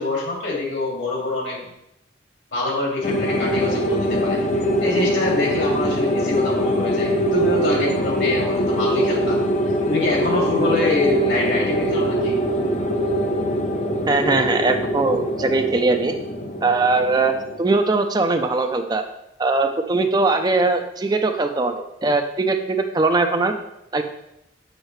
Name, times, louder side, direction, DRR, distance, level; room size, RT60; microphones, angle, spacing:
voice 1, 0.0-1.6 2.5-4.4 4.8-9.4 9.9-12.3, left 2 dB, 75° left, -3 dB, 2.6 m, -25 dB
sound 1, 3.0-17.6, equal, 40° left, 0.7 m, -22 dB
voice 2, 14.1-16.1 16.6-19.0 19.4-23.5 23.9-24.0, right 3 dB, 20° right, 6 dB, 0.4 m, -20 dB
7.2 x 6.4 x 3.2 m, 0.85 s
head